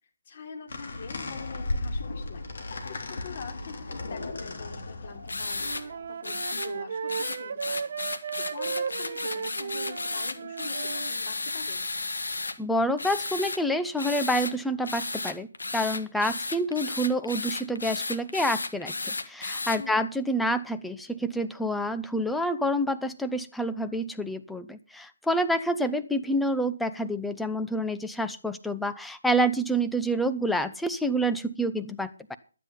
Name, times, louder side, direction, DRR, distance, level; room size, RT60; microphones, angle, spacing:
voice 1, 0.3-2.4 2.9-7.9 8.4-11.8 19.8-20.1, left 5 dB, 45° left, 3 dB, 3.6 m, -44 dB
sound 1, 0.7-6.1, left 2 dB, 65° left, 3.4 m, -35 dB
sound 2, 5.3-5.8 6.2-6.7 7.1-12.6 13.0-13.6 14.0-14.5 14.8-19.8, left 3 dB, 80° left, 1.6 m, -33 dB
Wind instrument woodwind instrument, 5.6-11.1, right 6 dB, 50° right, 0.6 m, -35 dB
voice 2, 12.6-15.5 15.7-32.4, equal, ahead, 9 dB, 0.7 m, -28 dB
12.0 x 9.9 x 5.6 m, 0.37 s
figure-of-eight pair, 150°, 0 cm